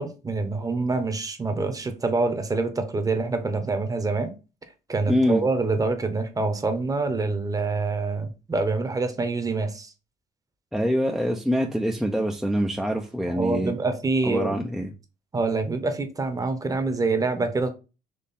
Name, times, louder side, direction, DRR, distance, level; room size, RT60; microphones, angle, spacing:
voice 1, 0.0-4.3 4.9-9.9 13.3-14.6 15.3-17.7, right 3 dB, 20° right, 0.9 m, -26 dB
voice 2, 5.1-5.4 10.7-13.7 14.2-14.9, equal, ahead, 0.5 m, -25 dB
4.2 x 3.1 x 3.6 m
cardioid pair, 110°, 17 cm